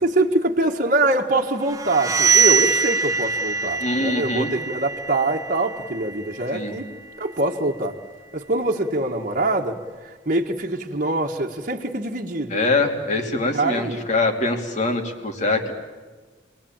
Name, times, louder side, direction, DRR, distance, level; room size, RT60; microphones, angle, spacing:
voice 1, 0.0-6.9 7.2-8.0 8.3-9.8 10.0-12.8 13.5-14.0, right 2 dB, 45° right, 0 dB, 1.6 m, -24 dB
sound 1, 1.7-7.3, right 5 dB, 20° right, 1.1 m, -23 dB
voice 2, 3.8-4.5 6.5-6.7 12.5-15.7, left 2 dB, 40° left, 4 dB, 2.9 m, -23 dB
29.0 x 20.5 x 8.9 m, 1.4 s
head